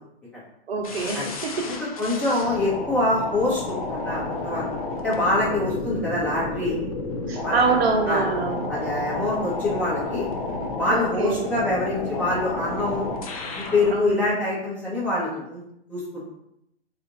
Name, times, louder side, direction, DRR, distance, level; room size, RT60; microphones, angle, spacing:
voice 1, 0.7-1.8 7.3-8.7 10.9-11.5 13.9-14.2, right 4 dB, 65° right, 1 dB, 1.0 m, -25 dB
sound 1, 0.8-14.0, left 3 dB, 35° left, 0.4 m, -31 dB
voice 2, 1.6-3.6 3.9-4.6 5.0-6.8 7.4-7.6 8.0-8.3 8.7-10.2 10.8-13.1 13.6-15.6 15.9-16.3, left 2 dB, 5° left, -10 dB, 0.8 m, -25 dB
2.8 x 2.5 x 3.9 m, 0.78 s
hypercardioid pair, 140°, 33 cm